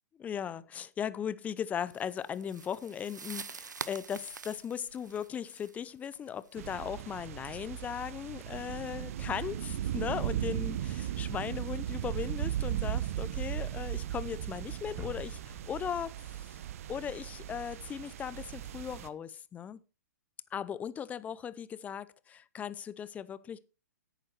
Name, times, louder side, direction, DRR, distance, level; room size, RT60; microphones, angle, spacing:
voice 1, 0.2-16.2 16.9-19.8 20.5-23.6, left 8 dB, 15° left, 0.5 m, -38 dB
sound 1, 1.9-6.8, right 5 dB, 80° right, 0.6 m, -46 dB
sound 2, 6.6-19.1, right 12 dB, 50° right, 0.9 m, -37 dB
sound 3, 15.0-17.6, right 2 dB, 20° right, 2.4 m, -47 dB
10.5 x 9.0 x 4.4 m
figure-of-eight pair, 120°, 10 cm